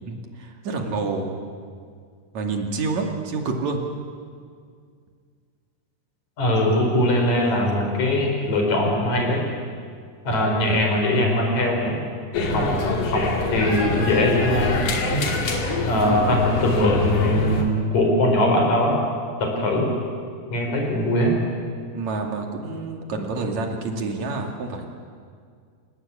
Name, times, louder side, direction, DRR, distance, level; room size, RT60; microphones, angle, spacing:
voice 1, 0.0-1.4 2.3-3.8 21.9-24.9, right 3 dB, 65° right, 2 dB, 3.6 m, -28 dB
voice 2, 6.4-9.4 10.2-12.0 12.5-12.8 13.1-14.8 15.9-19.0 19.4-19.9 20.5-21.4, left 1 dB, 65° left, 1 dB, 6.0 m, -21 dB
sound 1, 12.3-17.6, left 2 dB, 80° left, 4.0 m, -25 dB
29.0 x 17.5 x 8.5 m, 2.1 s
omnidirectional pair, 3.5 m